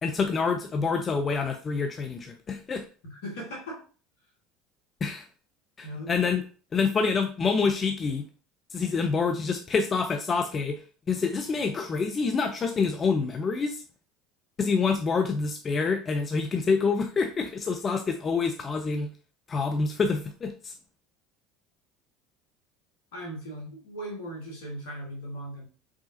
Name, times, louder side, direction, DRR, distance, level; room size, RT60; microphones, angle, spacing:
voice 1, 0.0-2.8 5.0-5.2 5.8-6.4 6.7-8.3 8.7-13.8 14.6-19.1 19.5-20.7, left 5 dB, 35° left, 5 dB, 0.6 m, -27 dB
voice 2, 3.1-3.8 5.8-6.1 23.1-25.6, right 1 dB, 75° left, -1 dB, 2.1 m, -38 dB
4.9 x 3.6 x 2.8 m, 0.37 s
hypercardioid pair, 75°, 0 cm